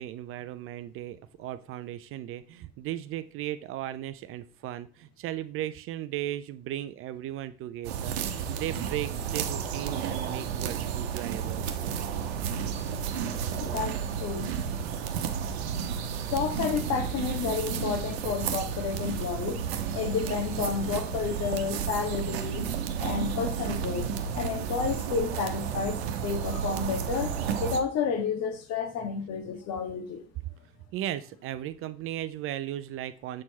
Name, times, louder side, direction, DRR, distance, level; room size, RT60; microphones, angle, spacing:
voice 1, 0.0-11.7 30.9-33.4, right 13 dB, 40° right, 0.5 m, -36 dB
sound 1, 7.8-27.8, right 7 dB, 70° right, 1.0 m, -32 dB
voice 2, 13.6-14.5 16.3-19.6 19.9-22.7 23.0-24.1 24.3-26.0 26.2-27.3 27.6-30.2, left 6 dB, 50° left, 1.6 m, -30 dB
7.5 x 4.4 x 4.1 m
hypercardioid pair, 75°, 33 cm